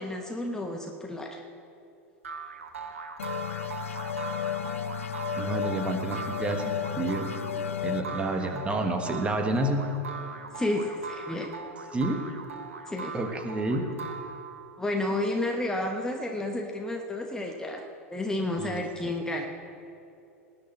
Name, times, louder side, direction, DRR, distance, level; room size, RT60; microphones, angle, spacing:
voice 1, 0.0-1.4 10.5-11.5 12.9-13.1 14.8-19.5, left 1 dB, 10° left, 2 dB, 1.1 m, -31 dB
sound 1, 2.2-14.8, right 5 dB, 65° right, 1.3 m, -40 dB
sound 2, 3.2-10.5, left 8 dB, 70° left, 0.5 m, -34 dB
voice 2, 5.4-7.3 7.8-9.8 11.9-12.2 13.1-13.8 18.6-18.7 19.0-19.1, right 2 dB, 15° right, 5 dB, 1.4 m, -29 dB
19.0 x 6.6 x 8.3 m, 2.7 s
figure-of-eight pair, 90°, 8 cm